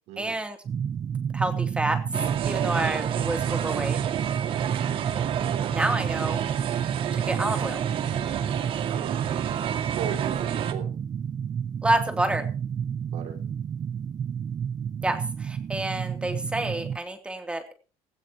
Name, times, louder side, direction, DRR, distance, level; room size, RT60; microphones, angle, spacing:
voice 1, 0.2-0.6 1.3-2.0 2.5-4.0 5.7-6.4 7.1-7.8 11.8-12.5 15.0-17.7, right 2 dB, 10° right, 7 dB, 2.8 m, -28 dB
sound 1, 0.6-17.0, right 7 dB, 30° right, 0.8 m, -30 dB
sound 2, 2.1-10.7, right 10 dB, 50° right, 2.1 m, -30 dB
voice 2, 5.4-5.7 8.9-9.2 9.9-10.9 13.1-13.4, right 8 dB, 65° right, 5 dB, 4.6 m, -37 dB
17.0 x 16.5 x 3.0 m, 0.35 s
cardioid pair, 140°, 12 cm